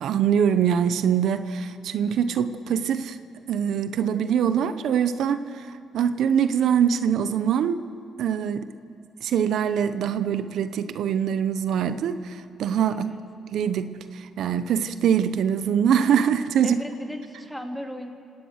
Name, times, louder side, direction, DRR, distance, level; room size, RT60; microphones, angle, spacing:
voice 1, 0.0-3.2 3.5-5.7 5.9-7.8 8.2-8.7 9.2-13.1 13.5-16.8, right 8 dB, 75° right, 11 dB, 0.8 m, -23 dB
voice 2, 12.9-13.2 16.6-18.1, equal, 5° left, 3 dB, 2.7 m, -36 dB
30.0 x 17.5 x 6.5 m, 2.5 s
cardioid pair, 90°, 0 cm